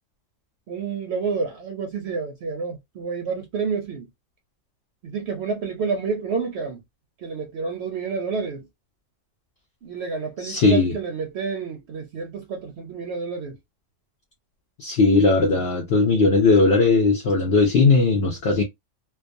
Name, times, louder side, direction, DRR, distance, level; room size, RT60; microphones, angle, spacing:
voice 1, 0.7-4.1 5.0-6.8 7.2-8.7 9.8-13.6, right 5 dB, 65° right, 0.8 m, -29 dB
voice 2, 10.4-11.0 14.8-18.6, left 3 dB, 60° left, 0.7 m, -18 dB
2.3 x 2.3 x 2.5 m
omnidirectional pair, 1.3 m